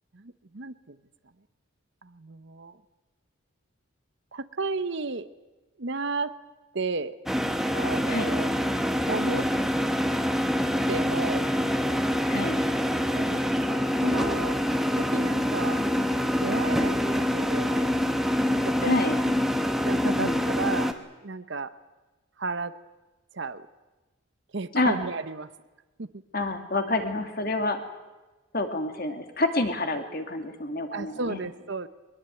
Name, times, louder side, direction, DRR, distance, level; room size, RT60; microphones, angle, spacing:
voice 1, 0.1-1.0 2.0-2.8 4.3-5.3 5.8-6.3 6.7-7.2 7.7-8.5 9.1-9.5 10.9-11.5 13.1-14.6 14.9-15.8 16.3-17.9 18.6-18.9 19.8-20.9 21.2-21.7 22.4-22.7 23.3-23.7 24.5-25.5 26.0-26.2 30.9-31.9, right 3 dB, 55° right, 13 dB, 0.9 m, -33 dB
sound 1, 7.3-20.9, equal, ahead, 1.1 m, -25 dB
voice 2, 12.3-12.6 18.8-19.2 20.0-20.4 24.7-25.0 26.3-27.8 28.5-31.4, left 2 dB, 45° left, 6 dB, 2.2 m, -28 dB
22.0 x 21.0 x 9.1 m, 1.2 s
head